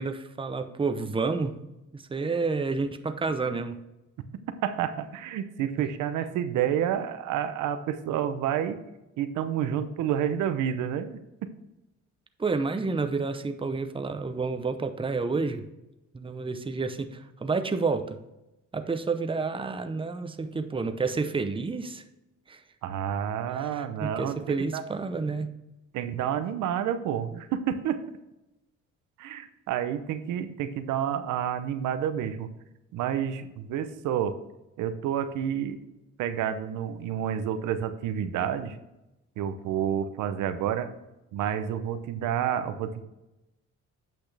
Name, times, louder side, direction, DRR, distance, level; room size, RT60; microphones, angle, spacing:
voice 1, 0.0-1.5 1.9-3.8 5.8-5.9 12.4-15.6 16.1-18.2 18.7-22.0 22.5-22.6 23.5-25.5, right 4 dB, 15° right, 8 dB, 0.7 m, -30 dB
voice 2, 4.6-8.8 9.2-11.2 22.8-24.8 25.9-28.2 29.2-32.5 32.9-34.4 34.8-35.8 36.2-38.8 39.4-40.9 41.3-43.0, right 9 dB, 90° right, 10 dB, 0.8 m, -29 dB
8.6 x 6.1 x 3.4 m, 0.94 s
cardioid pair, 90°, 30 cm